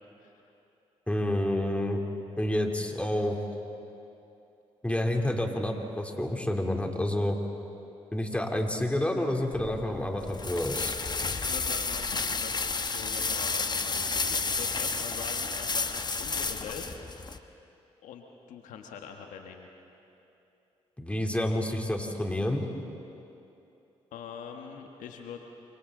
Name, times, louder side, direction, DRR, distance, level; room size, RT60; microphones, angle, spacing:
voice 1, 0.2-0.5 11.2-17.0 18.0-19.7 24.1-25.4, left 6 dB, 75° left, 3 dB, 1.4 m, -43 dB
voice 2, 1.1-2.0 2.4-3.4 4.8-7.4 8.1-10.9 21.0-22.6, left 1 dB, 10° left, 2 dB, 3.1 m, -29 dB
sound 1, 9.5-17.4, left 4 dB, 30° left, 1.2 m, -31 dB
29.0 x 24.5 x 3.9 m, 2.9 s
hypercardioid pair, 45°, 13 cm